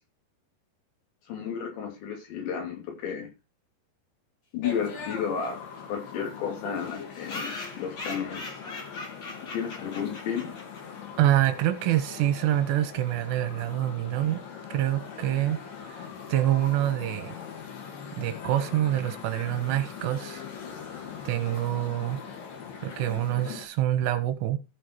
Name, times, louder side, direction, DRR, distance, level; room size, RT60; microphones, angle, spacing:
voice 1, 1.3-3.3 4.5-5.6 5.9-8.6 9.4-10.6 18.0-18.3, left 7 dB, 80° left, 4.9 m, -33 dB
sound 1, 4.6-23.7, left 6 dB, 60° left, 3.5 m, -41 dB
sound 2, 5.1-5.2 5.4-5.5 5.8-5.9 6.1-6.2 6.8-11.0, left 3 dB, 40° left, 1.9 m, -40 dB
voice 2, 11.2-14.4 14.7-15.6 15.9-17.4 18.2-20.4 21.3-22.2 22.8-24.6, right 12 dB, 80° right, 2.9 m, -26 dB
14.5 x 5.1 x 4.5 m
omnidirectional pair, 5.1 m